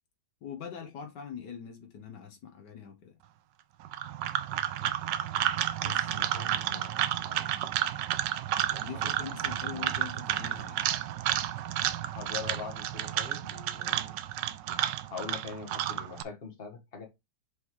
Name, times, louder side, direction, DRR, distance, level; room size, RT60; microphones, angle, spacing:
voice 1, 0.4-3.2 5.8-6.1 8.8-10.9, left 7 dB, 75° left, 1.6 m, -43 dB
sound 1, 3.8-16.2, right 12 dB, 85° right, 1.3 m, -31 dB
voice 2, 6.1-7.4 8.7-8.8 9.7-10.0 12.0-14.2 15.1-17.1, left 5 dB, 35° left, 1.6 m, -43 dB
6.3 x 5.4 x 3.1 m
omnidirectional pair, 1.9 m